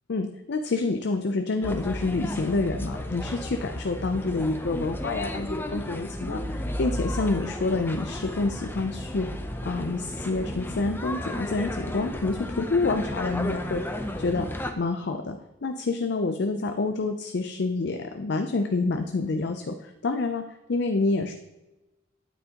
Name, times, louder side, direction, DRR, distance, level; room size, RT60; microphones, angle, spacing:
voice 1, 0.1-9.3 9.6-13.8 14.2-14.5 14.8-20.4 20.7-21.3, left 3 dB, 60° left, 6 dB, 0.5 m, -28 dB
sound 1, 1.6-14.7, left 1 dB, 10° left, 0.6 m, -33 dB
9.4 x 8.6 x 2.9 m, 1.0 s
head